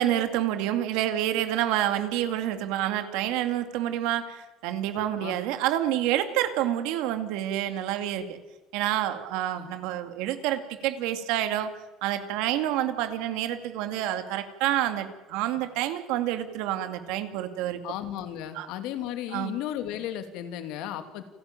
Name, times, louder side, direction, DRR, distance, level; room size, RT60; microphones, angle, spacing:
voice 1, 0.0-8.4 8.7-17.8 18.5-18.7 19.3-19.5, right 12 dB, 85° right, 9 dB, 2.4 m, -28 dB
voice 2, 17.8-21.2, left 11 dB, 80° left, 9 dB, 2.6 m, -34 dB
29.0 x 12.5 x 9.0 m, 1.2 s
cardioid pair, 150°, 0 cm